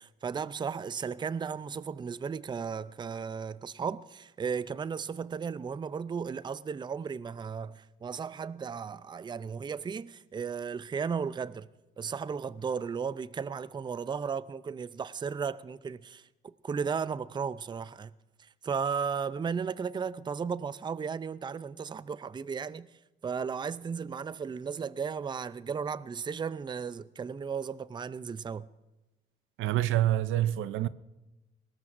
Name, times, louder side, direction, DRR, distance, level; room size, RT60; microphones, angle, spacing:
voice 1, 0.0-11.7 12.0-16.3 16.6-18.1 18.4-22.9 23.2-28.7, right 6 dB, 25° right, 0.4 m, -35 dB
voice 2, 29.6-30.9, right 13 dB, 85° right, 0.5 m, -27 dB
21.5 x 19.0 x 2.6 m
cardioid pair, 90°, 20 cm